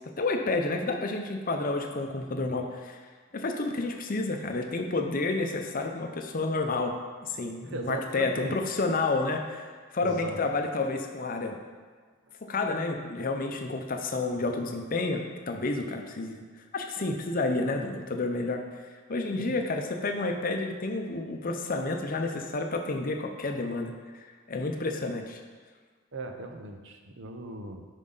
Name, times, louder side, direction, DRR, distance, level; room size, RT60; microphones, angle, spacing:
voice 1, 0.2-3.0 3.3-6.9 7.2-11.6 12.4-16.4 16.7-18.6 19.1-25.4, left 3 dB, 40° left, 4 dB, 0.6 m, -30 dB
voice 2, 7.6-8.6 8.9-9.0 10.0-10.4 19.3-19.6 26.1-27.9, right 2 dB, 55° right, 4 dB, 0.7 m, -39 dB
7.3 x 5.4 x 4.0 m, 1.5 s
head